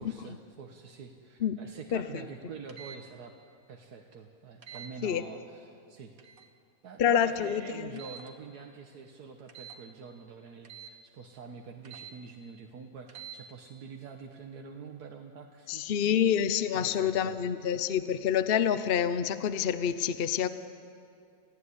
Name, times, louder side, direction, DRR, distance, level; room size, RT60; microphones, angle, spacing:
voice 1, 0.0-3.3 3.7-6.1 6.8-16.2 16.7-17.4, right 5 dB, 80° right, 3 dB, 1.8 m, -46 dB
sound 1, 2.7-3.0 4.6-4.9 6.2-6.5 8.0-8.3 9.5-9.8 10.7-10.9 11.9-12.1 13.1-13.4, right 8 dB, 65° right, 2.0 m, -46 dB
voice 2, 7.0-8.0 15.7-20.5, left 9 dB, 45° left, 12 dB, 0.9 m, -27 dB
29.0 x 15.5 x 9.9 m, 2.4 s
omnidirectional pair, 1.6 m